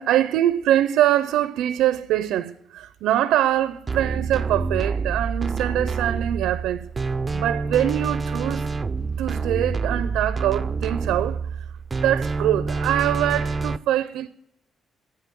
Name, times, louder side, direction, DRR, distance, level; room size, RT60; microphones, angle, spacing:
voice 1, 0.0-6.9 7.3-8.7 9.2-11.4 11.9-14.3, right 12 dB, 90° right, 0.4 m, -23 dB
sound 1, 3.9-13.8, right 4 dB, 30° right, 0.4 m, -27 dB
9.1 x 8.0 x 7.4 m
cardioid pair, 90°, 0 cm